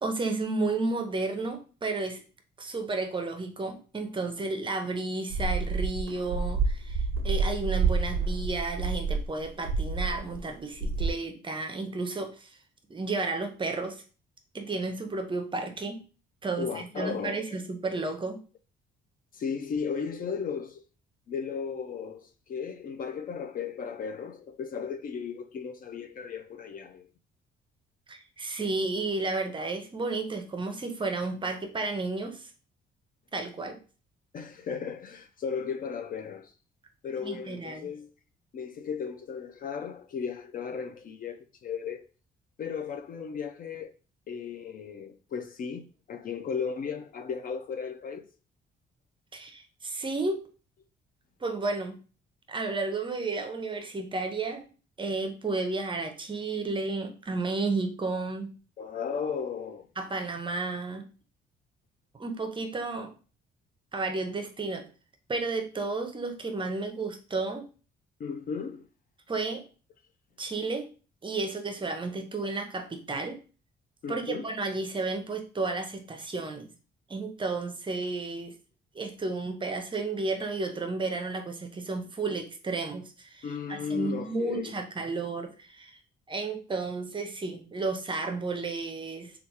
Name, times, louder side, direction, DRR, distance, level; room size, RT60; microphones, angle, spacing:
voice 1, 0.0-2.2 2.6-12.6 12.9-14.0 14.5-16.0 16.4-18.4 28.1-32.5 33.3-33.8 37.2-37.9 49.3-50.4 51.4-52.0 52.5-54.7 55.0-58.5 60.0-61.0 62.1-63.1 63.9-64.9 65.3-67.6 69.3-69.6 70.4-70.9 71.2-73.4 74.1-76.7 77.1-78.5 78.9-86.0 86.3-89.3, right 3 dB, 25° right, 0.6 m, -32 dB
sound 1, 5.3-10.5 10.7-11.1, right 4 dB, 75° right, 0.4 m, -28 dB
voice 2, 16.6-17.6 17.9-18.0 19.3-20.8 21.3-27.1 34.3-36.5 37.0-38.1 38.5-42.1 42.6-43.9 44.3-48.3 58.8-59.9 68.2-68.8 74.0-74.5 83.4-84.7 89.2-89.3, left 6 dB, 45° left, 0.4 m, -35 dB
3.3 x 2.3 x 2.8 m
cardioid pair, 90°, 20 cm